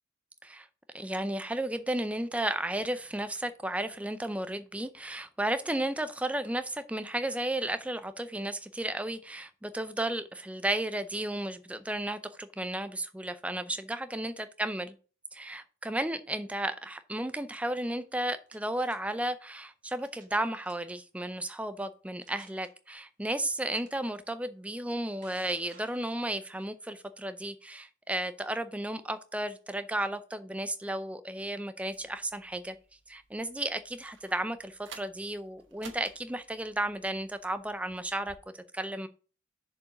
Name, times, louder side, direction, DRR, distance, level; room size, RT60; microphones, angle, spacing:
voice 1, 0.9-14.3 14.6-14.9 15.3-32.8 33.1-39.1, right 1 dB, 5° right, 0.4 m, -33 dB
sound 1, 18.1-19.0 20.0-20.4 20.6-21.0 21.6-21.7 22.2-22.7 23.7-23.9 24.8-26.6, right 5 dB, 40° right, 1.6 m, -57 dB
sound 2, 31.9-38.4, right 6 dB, 60° right, 1.1 m, -55 dB
6.8 x 4.6 x 6.4 m
head